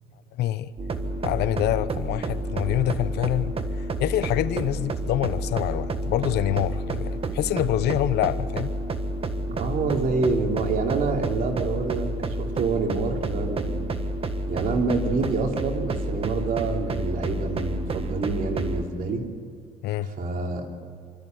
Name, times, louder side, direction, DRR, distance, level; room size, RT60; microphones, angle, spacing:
voice 1, 0.4-0.7 1.2-8.7 19.8-20.1, left 13 dB, 75° left, 14 dB, 0.9 m, -26 dB
sound 1, 0.8-18.8, right 2 dB, 35° right, 1.5 m, -30 dB
voice 2, 9.5-12.1 12.4-13.9 14.5-19.2 20.0-20.7, right 3 dB, 55° right, 2 dB, 3.4 m, -27 dB
26.0 x 14.0 x 9.4 m, 2.3 s
cardioid pair, 110°, 17 cm